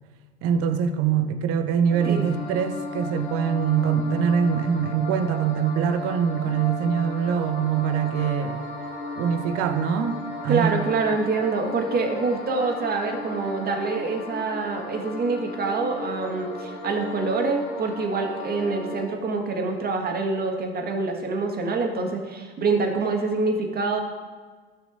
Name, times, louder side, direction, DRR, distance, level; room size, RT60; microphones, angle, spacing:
voice 1, 0.4-8.7 9.2-10.8, right 7 dB, 50° right, 0.9 m, -24 dB
sound 1, 1.9-19.0, left 1 dB, 35° left, 2.0 m, -35 dB
voice 2, 10.5-24.0, right 3 dB, 30° right, 1.7 m, -26 dB
15.5 x 6.1 x 2.7 m
figure-of-eight pair, 70°, 30 cm